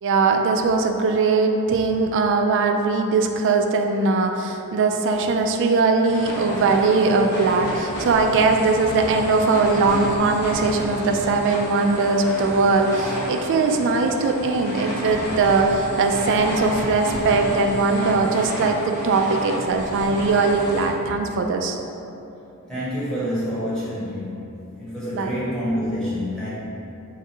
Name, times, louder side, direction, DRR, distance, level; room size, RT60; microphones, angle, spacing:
voice 1, 0.0-21.8 25.1-25.3, right 3 dB, 55° right, 4 dB, 0.3 m, -20 dB
sound 1, 6.0-20.9, equal, 80° left, 1.2 m, -31 dB
voice 2, 22.6-26.5, equal, 5° left, -11 dB, 1.2 m, -27 dB
4.0 x 2.4 x 4.4 m, 2.9 s
head